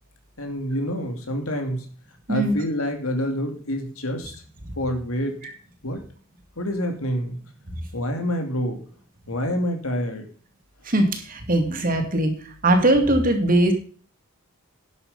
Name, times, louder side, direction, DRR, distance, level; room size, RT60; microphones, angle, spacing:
voice 1, 0.4-1.9 2.3-4.4 4.8-5.4 5.8-6.0 6.6-7.4 7.9-8.8 9.3-10.2, equal, 75° left, 5 dB, 2.6 m, -27 dB
voice 2, 10.8-12.3 12.6-13.7, right 1 dB, 40° right, 5 dB, 2.3 m, -20 dB
11.0 x 7.9 x 5.5 m, 0.42 s
head